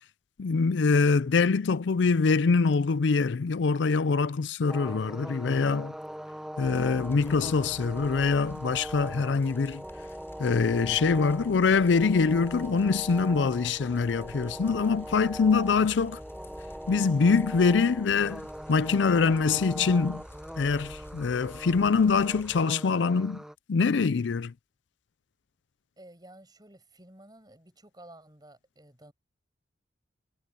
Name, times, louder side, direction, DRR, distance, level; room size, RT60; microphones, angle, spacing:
voice 1, 0.4-5.9 6.6-9.8 10.4-16.2 16.9-18.4 18.7-20.2 20.6-23.4 23.7-24.5, left 4 dB, 70° left, 0.5 m, -24 dB
sound 1, 4.7-23.5, equal, 5° right, 0.9 m, -41 dB
sound 2, 6.6-22.6, equal, 10° left, 7.0 m, -49 dB
voice 2, 26.0-29.1, right 1 dB, 20° right, 6.2 m, -52 dB
head